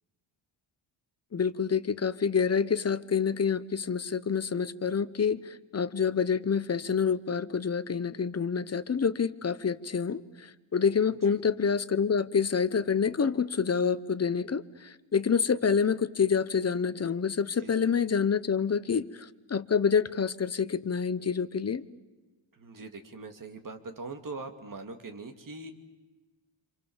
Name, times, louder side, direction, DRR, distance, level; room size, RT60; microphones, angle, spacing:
voice 1, 1.3-10.2 10.7-14.6 15.1-19.0 19.5-21.8, left 6 dB, 30° left, 14 dB, 0.9 m, -27 dB
voice 2, 17.6-18.1 22.6-25.7, right 3 dB, 40° right, 6 dB, 2.7 m, -42 dB
27.5 x 26.5 x 7.3 m, 1.2 s
wide cardioid pair, 125°, 50 cm